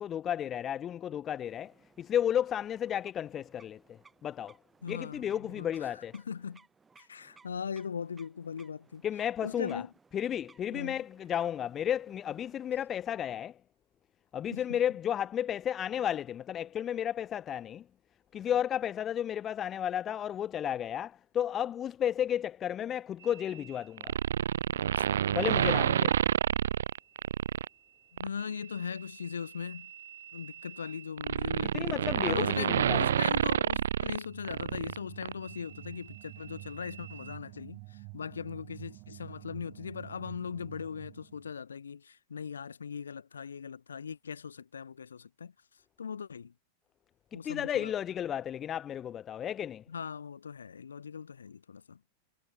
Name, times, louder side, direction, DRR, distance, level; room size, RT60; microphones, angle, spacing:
voice 1, 0.0-4.6 4.9-6.1 9.0-9.8 10.1-13.6 14.3-17.9 18.3-24.1 25.3-26.1 31.7-33.0 47.3-49.8, left 10 dB, 25° left, 0.5 m, -33 dB
sound 1, 1.4-13.2, right 4 dB, 15° right, 3.6 m, -63 dB
voice 2, 4.8-5.7 6.1-6.6 7.0-9.0 9.4-9.9 10.7-11.0 14.5-14.8 24.7-25.1 25.3-25.6 28.1-29.9 30.3-45.5 46.0-46.5 47.3-47.9 49.9-52.0, left 6 dB, 70° left, 1.5 m, -39 dB
sound 2, 24.0-27.7 28.2-28.4 29.6-35.0 35.2-35.3, right 9 dB, 65° right, 0.3 m, -29 dB
sound 3, 34.2-41.5, right 37 dB, 45° right, 1.1 m, -49 dB
figure-of-eight pair, 90°, 0 cm